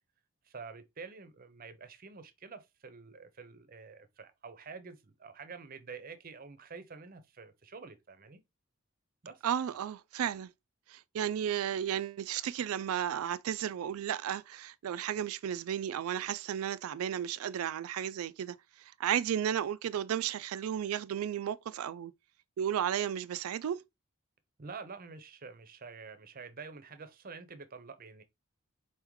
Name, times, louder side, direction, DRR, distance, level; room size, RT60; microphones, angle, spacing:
voice 1, 0.4-8.4 9.2-9.4 24.6-28.2, right 5 dB, 40° right, 0.6 m, -48 dB
voice 2, 9.4-10.5 10.9-22.1 22.6-23.8, right 9 dB, 85° right, 0.3 m, -34 dB
4.4 x 3.6 x 3.0 m
head